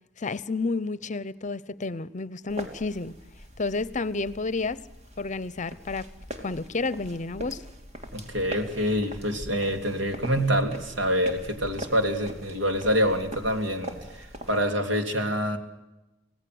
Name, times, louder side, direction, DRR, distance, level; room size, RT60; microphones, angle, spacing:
voice 1, 0.2-3.2 3.6-4.8 5.2-6.1 6.4-7.6, left 3 dB, 40° left, 18 dB, 0.8 m, -30 dB
sound 1, 2.5-14.6, equal, 35° right, 3.1 m, -42 dB
voice 2, 8.1-15.6, equal, 75° right, 5 dB, 3.2 m, -26 dB
26.0 x 17.5 x 7.9 m, 0.97 s
head